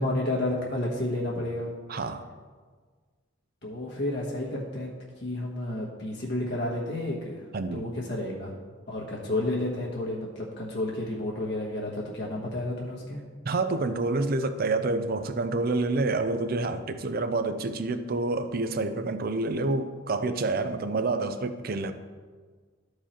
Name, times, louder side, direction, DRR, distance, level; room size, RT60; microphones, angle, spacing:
voice 1, 0.0-1.7 3.6-4.9 5.2-7.4 7.7-8.5 8.9-13.2, left 1 dB, 55° left, -4 dB, 1.3 m, -31 dB
voice 2, 1.9-2.2 7.5-7.9 13.4-21.9, right 3 dB, 45° right, 9 dB, 0.5 m, -28 dB
12.5 x 4.8 x 4.3 m, 1.5 s
head